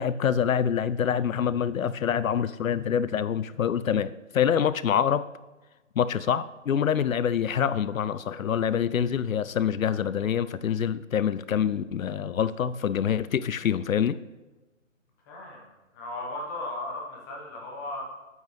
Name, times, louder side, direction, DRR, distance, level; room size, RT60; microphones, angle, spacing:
voice 1, 0.0-5.3 6.0-14.2, left 8 dB, 85° left, 15 dB, 0.5 m, -26 dB
voice 2, 15.3-18.0, left 2 dB, 15° left, -1 dB, 1.2 m, -36 dB
9.1 x 8.2 x 3.2 m, 1.1 s
figure-of-eight pair, 155°, 40 cm